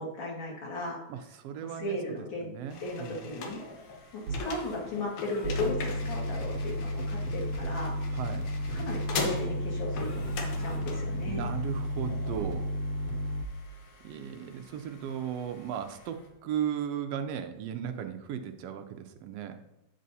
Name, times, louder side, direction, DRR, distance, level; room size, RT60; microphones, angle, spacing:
voice 1, 0.0-1.0 1.6-2.5 2.8-3.6 4.1-7.9 8.7-11.5, left 2 dB, 45° left, -3 dB, 2.4 m, -36 dB
voice 2, 1.1-2.0 2.4-3.2 8.1-8.5 11.3-12.7 14.0-19.6, right 8 dB, 85° right, 7 dB, 1.4 m, -36 dB
sound 1, 2.7-16.3, left 4 dB, 85° left, 2.5 m, -42 dB
sound 2, 4.3-4.4 5.4-13.5, equal, 65° right, 1.8 m, -33 dB
9.9 x 7.5 x 2.7 m, 0.90 s
omnidirectional pair, 3.3 m